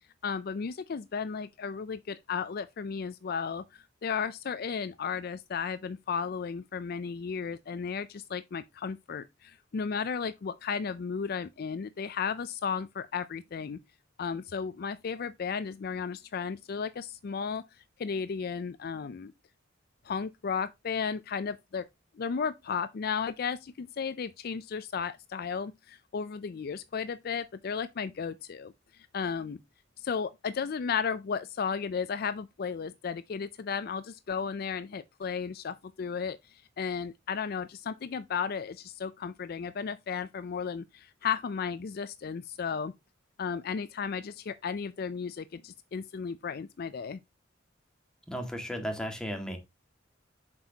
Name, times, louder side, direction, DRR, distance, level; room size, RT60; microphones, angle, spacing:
voice 1, 0.2-13.8 14.2-17.6 18.0-19.3 20.0-21.9 22.2-29.6 30.0-42.9 43.4-47.2, left 6 dB, 50° left, 0.4 m, -34 dB
voice 2, 48.3-49.6, equal, 5° left, 1.8 m, -35 dB
7.5 x 6.1 x 2.8 m
head